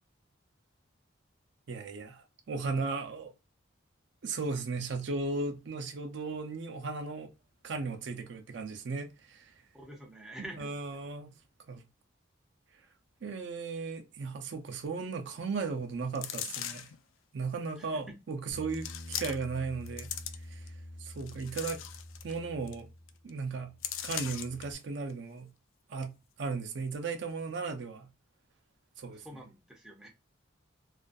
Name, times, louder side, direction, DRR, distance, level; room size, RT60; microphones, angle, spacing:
voice 1, 1.7-3.3 4.2-7.3 7.6-9.5 10.4-11.3 11.7-11.8 13.2-16.9 17.3-20.1 20.5-20.6 21.0-21.8 22.2-22.9 23.2-23.7 24.0-25.5 25.9-28.1 29.0-29.3, right 4 dB, 65° right, 0.4 m, -36 dB
voice 2, 9.7-10.7 17.8-17.9 29.1-30.1, right 1 dB, 5° right, 0.4 m, -46 dB
sound 1, 16.1-17.0 17.8-17.9 18.7-19.6 19.9-20.7 21.2-22.4 22.7-22.8 23.1-23.3 23.8-24.6 25.1-25.2, left 10 dB, 80° left, 0.3 m, -39 dB
Bass guitar, 18.5-23.3 23.6-24.7, left 1 dB, 60° left, 0.7 m, -47 dB
2.4 x 2.2 x 2.4 m
head